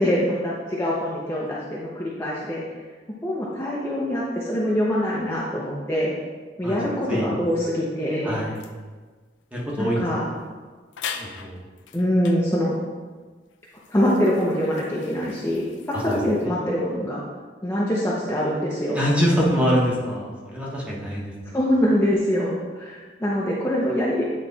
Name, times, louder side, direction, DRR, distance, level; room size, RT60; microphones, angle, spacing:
voice 1, 0.0-2.6 3.2-6.1 6.6-8.3 9.8-10.2 11.9-12.7 13.9-17.2 17.6-19.0 21.5-24.3, equal, 15° left, -6 dB, 0.7 m, -24 dB
voice 2, 8.2-8.6 9.5-10.4 11.1-11.6 15.9-16.5 18.9-21.5, equal, 5° right, -5 dB, 1.2 m, -25 dB
sound 1, 8.5-8.8 10.0-10.1 10.4-10.5 10.9-12.4 13.2-16.5, left 7 dB, 90° left, 0.5 m, -40 dB
8.8 x 3.2 x 4.0 m, 1.4 s
head